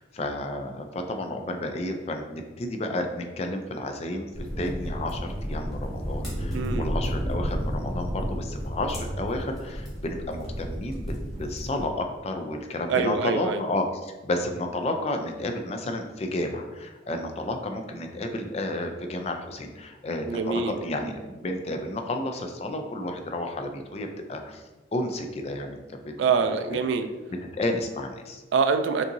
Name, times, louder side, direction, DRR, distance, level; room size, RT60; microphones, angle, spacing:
voice 1, 0.0-24.6 24.9-25.8 26.0-26.1 27.3-28.4, left 1 dB, 35° left, 4 dB, 0.4 m, -31 dB
sound 1, 4.3-11.9, equal, ahead, 1.3 m, -32 dB
voice 2, 6.5-6.9 12.9-13.6 20.3-20.7 26.2-27.1 28.5-29.0, right 5 dB, 75° right, 8 dB, 0.3 m, -24 dB
5.4 x 2.7 x 2.6 m, 1.2 s
head